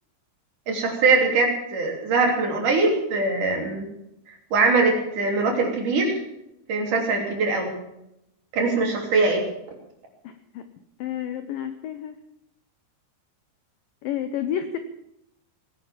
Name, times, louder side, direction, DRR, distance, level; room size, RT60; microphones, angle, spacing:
voice 1, 0.7-3.9 4.5-6.2 6.7-7.7 8.5-9.4, right 3 dB, 50° right, 1 dB, 4.3 m, -22 dB
voice 2, 10.2-10.6 11.0-12.2 14.0-14.8, left 10 dB, 85° left, 10 dB, 2.0 m, -30 dB
19.5 x 10.5 x 7.1 m, 0.83 s
omnidirectional pair, 5.2 m